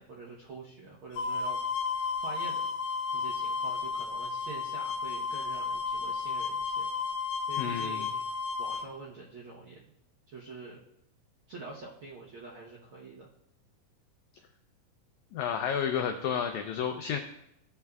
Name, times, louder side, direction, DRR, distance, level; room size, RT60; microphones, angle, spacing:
voice 1, 0.0-1.6 1.9-2.7 3.1-6.9 7.5-8.1 8.6-9.8 10.3-10.8 11.5-13.3, right 3 dB, 70° right, -4 dB, 1.2 m, -46 dB
sound 1, 1.2-8.9, left 5 dB, 65° left, 1.8 m, -33 dB
voice 2, 7.6-8.0 15.3-17.2, left 8 dB, 85° left, 6 dB, 1.6 m, -31 dB
16.0 x 5.6 x 2.3 m, 0.79 s
omnidirectional pair, 4.0 m